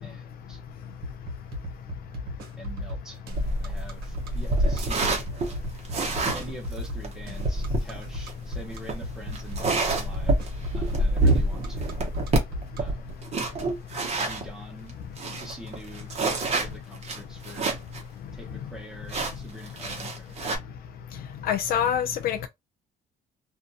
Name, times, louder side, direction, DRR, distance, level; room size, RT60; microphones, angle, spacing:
voice 1, 0.0-0.6 2.6-3.2 3.6-5.2 6.3-11.9 12.8-13.0 14.1-15.0 15.4-16.1 16.5-17.7 18.3-20.4, right 1 dB, 5° right, 1.0 m, -45 dB
sound 1, 1.0-12.8, equal, 65° right, 1.1 m, -36 dB
sound 2, 3.3-14.5 14.9-15.0 15.2-18.0 18.3-18.4 19.1-20.6, right 2 dB, 40° right, 0.9 m, -27 dB
voice 2, 21.4-22.5, left 9 dB, 60° left, 0.4 m, -25 dB
2.5 x 2.2 x 2.6 m
cardioid pair, 110°, 17 cm